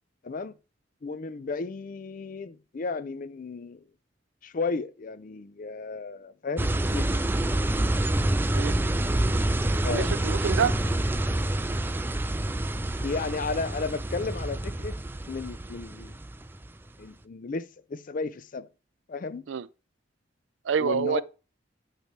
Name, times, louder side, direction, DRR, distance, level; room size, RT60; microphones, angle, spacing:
voice 1, 1.0-3.8 4.4-7.2 9.8-10.1 13.0-15.0 15.3-16.2 17.0-18.7 19.1-19.4 20.8-21.2, left 4 dB, 45° left, 0.5 m, -33 dB
sound 1, 6.6-16.7, right 1 dB, 10° right, 0.4 m, -27 dB
voice 2, 9.9-10.7 19.5-19.7 20.7-21.2, right 7 dB, 90° right, 0.4 m, -27 dB
9.2 x 3.3 x 6.6 m
head